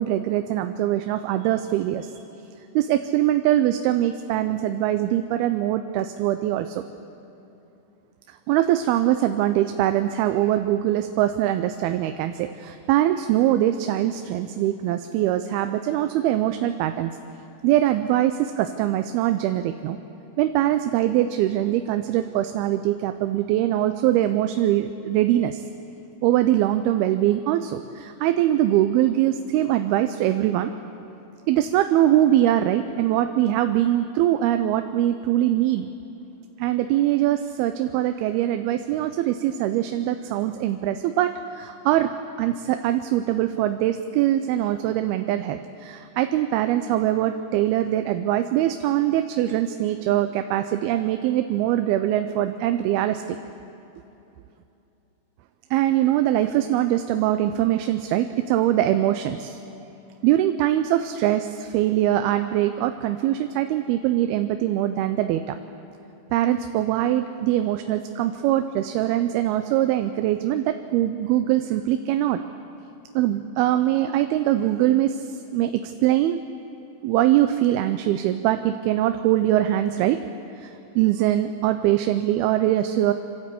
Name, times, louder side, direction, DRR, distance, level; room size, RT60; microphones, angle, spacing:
voice 1, 0.0-2.1 2.8-6.8 8.3-17.1 17.6-20.0 20.4-25.6 26.2-30.7 31.5-35.9 36.6-42.1 42.4-53.4 55.7-59.6 60.2-65.6 66.3-72.4 73.2-76.4 77.0-80.2 80.6-83.1, right 13 dB, 85° right, 8 dB, 2.6 m, -22 dB
27.0 x 13.0 x 8.4 m, 2.9 s
omnidirectional pair, 4.4 m